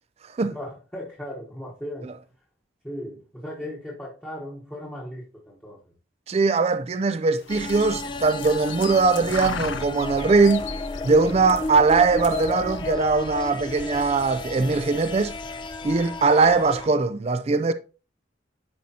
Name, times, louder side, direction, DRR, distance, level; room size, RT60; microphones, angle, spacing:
voice 1, 0.5-2.2 2.8-5.8, left 1 dB, 10° left, 1.1 m, -37 dB
voice 2, 6.3-10.7 11.0-15.3 15.8-17.7, right 4 dB, 35° right, 0.4 m, -21 dB
sound 1, 7.4-12.9, left 8 dB, 85° left, 0.5 m, -38 dB
sound 2, 7.5-16.9, left 2 dB, 25° left, 0.5 m, -33 dB
10.5 x 4.9 x 2.8 m
head